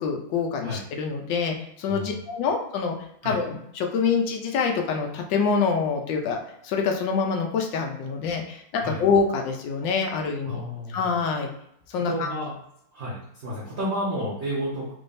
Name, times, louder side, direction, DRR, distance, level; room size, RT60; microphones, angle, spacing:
voice 1, 0.0-2.9 3.2-6.4 6.6-10.6 10.9-11.5 11.9-12.3, left 5 dB, 75° left, 3 dB, 1.2 m, -26 dB
voice 2, 10.4-11.0 11.9-12.6 12.9-14.9, equal, 50° right, -5 dB, 0.8 m, -31 dB
3.5 x 3.3 x 2.6 m, 0.72 s
omnidirectional pair, 2.1 m